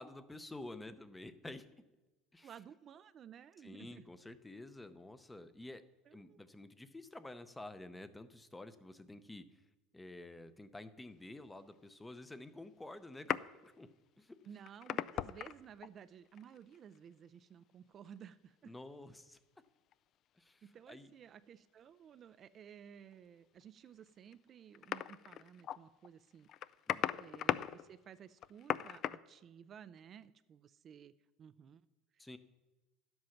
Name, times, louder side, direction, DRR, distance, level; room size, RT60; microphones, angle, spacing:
voice 1, 0.0-1.6 2.3-2.5 3.6-5.8 6.1-9.6 9.9-13.9 14.2-14.4 18.6-19.4 20.4-21.1 26.9-27.2 32.2-32.4, left 2 dB, 10° left, 12 dB, 0.7 m, -50 dB
voice 2, 2.4-4.1 6.1-6.4 14.4-18.7 20.6-26.5 27.2-31.1 31.4-31.8 32.1-32.4, right 8 dB, 35° right, 14 dB, 0.4 m, -55 dB
sound 1, 13.1-13.7 14.5-15.9 16.4-17.0 19.9-20.0 23.1-23.2 24.3-24.4 24.7-25.8 26.0-26.1 26.4-29.2, left 11 dB, 45° left, 0.3 m, -38 dB
11.5 x 7.8 x 5.8 m, 1.1 s
supercardioid pair, 120°, 0 cm